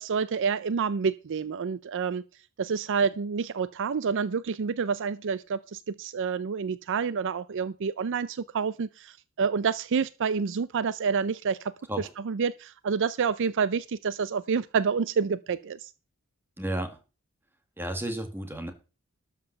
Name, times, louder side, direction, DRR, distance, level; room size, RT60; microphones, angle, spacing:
voice 1, 0.0-2.2 2.6-15.9, right 6 dB, 60° right, 0.5 m, -28 dB
voice 2, 16.6-17.0 17.8-18.7, right 1 dB, 10° right, 1.9 m, -32 dB
12.5 x 5.4 x 6.7 m
head